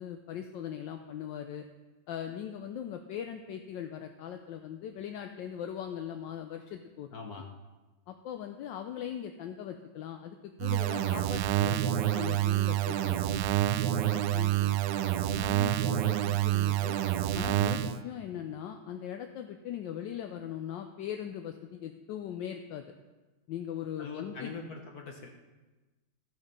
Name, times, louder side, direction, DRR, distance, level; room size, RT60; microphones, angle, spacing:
voice 1, 0.0-1.6 2.1-7.4 8.1-13.4 14.1-14.8 15.3-17.0 17.3-22.8 23.5-24.5, left 9 dB, 75° left, 6 dB, 1.2 m, -40 dB
voice 2, 7.1-7.5 24.0-25.3, left 4 dB, 55° left, 2 dB, 1.3 m, -42 dB
sound 1, 10.6-18.0, right 12 dB, 75° right, 1.0 m, -28 dB
14.0 x 6.5 x 5.3 m, 1.2 s
omnidirectional pair, 2.3 m